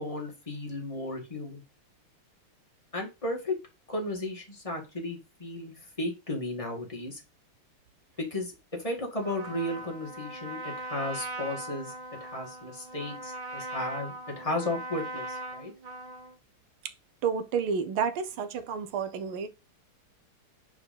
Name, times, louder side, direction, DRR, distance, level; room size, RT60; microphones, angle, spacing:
voice 1, 0.0-1.6 2.9-3.5 3.9-7.2 8.2-11.9 12.2-15.7, left 1 dB, 15° left, 2.0 m, -34 dB
Trumpet, 9.2-16.3, right 2 dB, 50° right, 1.8 m, -40 dB
voice 2, 17.2-19.5, right 6 dB, 75° right, 1.7 m, -30 dB
5.1 x 4.9 x 5.3 m
omnidirectional pair, 2.4 m